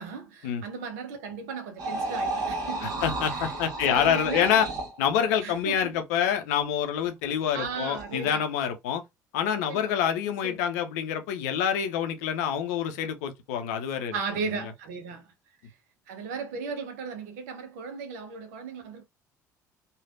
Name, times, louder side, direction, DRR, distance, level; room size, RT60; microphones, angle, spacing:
voice 1, 0.0-3.0 3.3-3.5 3.8-4.6 5.4-5.9 7.5-8.4 9.7-9.9 10.4-10.6 14.1-15.3 16.1-19.0, right 5 dB, 65° right, 0.7 m, -36 dB
sound 1, 1.8-5.0 7.6-8.3, right 2 dB, 45° right, 1.3 m, -33 dB
voice 2, 2.8-4.7 5.0-9.0 9.3-14.1, left 8 dB, 65° left, 0.6 m, -27 dB
3.2 x 2.4 x 2.4 m
figure-of-eight pair, 55°, 9 cm